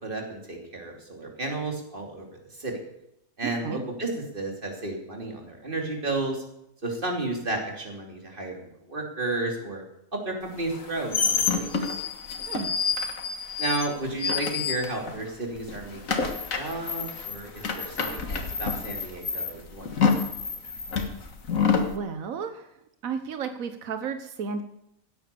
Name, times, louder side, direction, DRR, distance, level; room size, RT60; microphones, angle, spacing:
voice 1, 0.0-2.8 3.4-6.4 6.8-9.8 10.1-11.7 13.6-20.2, right 2 dB, 40° right, 1 dB, 3.1 m, -32 dB
voice 2, 3.4-3.8 12.5-12.7 21.6-22.7 23.0-24.6, right 6 dB, 90° right, 9 dB, 1.3 m, -33 dB
sound 1, 10.7-15.3 15.6-21.9, left 5 dB, 75° left, 2.0 m, -28 dB
16.0 x 9.6 x 6.8 m, 0.80 s
omnidirectional pair, 1.4 m